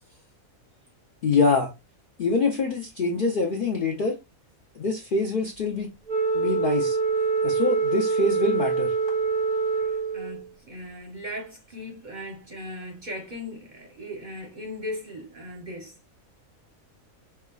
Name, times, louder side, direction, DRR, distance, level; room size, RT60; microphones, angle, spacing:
voice 1, 1.2-1.7 2.2-4.2 4.8-5.9 6.3-7.0 7.4-8.9, left 3 dB, 60° left, 0.5 m, -25 dB
Wind instrument woodwind instrument, 6.1-10.4, right 4 dB, 70° right, 0.4 m, -25 dB
voice 2, 9.8-16.0, left 1 dB, 45° right, 0.7 m, -38 dB
5.5 x 2.0 x 2.2 m
omnidirectional pair, 1.5 m